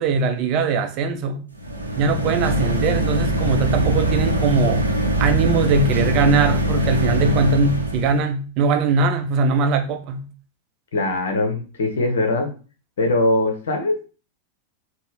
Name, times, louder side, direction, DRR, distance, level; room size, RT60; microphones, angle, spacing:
voice 1, 0.0-1.4 2.0-4.9 5.2-10.3, right 4 dB, 40° right, 0.5 m, -21 dB
sound 1, 1.5-8.2, right 1 dB, 80° right, 0.6 m, -22 dB
voice 2, 10.9-12.5 13.0-14.1, left 2 dB, 60° left, 0.8 m, -21 dB
4.2 x 2.1 x 3.3 m
figure-of-eight pair, 90°, 0 cm